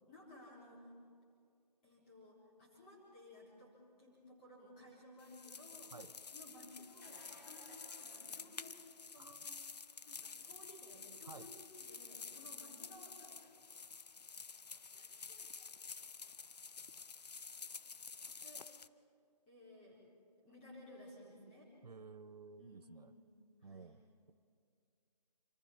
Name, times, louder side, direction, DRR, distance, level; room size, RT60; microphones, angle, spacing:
voice 1, 0.1-0.9 1.8-5.9 6.3-8.8 9.0-9.5 10.1-13.5 14.9-15.7 18.4-18.7 19.5-20.0 20.4-21.7 22.6-23.3 23.6-24.1, left 1 dB, 15° left, -5 dB, 4.0 m, -58 dB
sound 1, 5.2-18.9, left 5 dB, 70° left, 0.8 m, -50 dB
sound 2, 7.0-9.1 14.6-14.7 16.5-16.6, left 1 dB, 30° left, 3.9 m, -62 dB
voice 2, 21.8-23.1 23.6-24.3, right 4 dB, 70° right, 12 dB, 0.9 m, -54 dB
26.5 x 24.0 x 4.4 m, 2.3 s
hypercardioid pair, 175°, 21 cm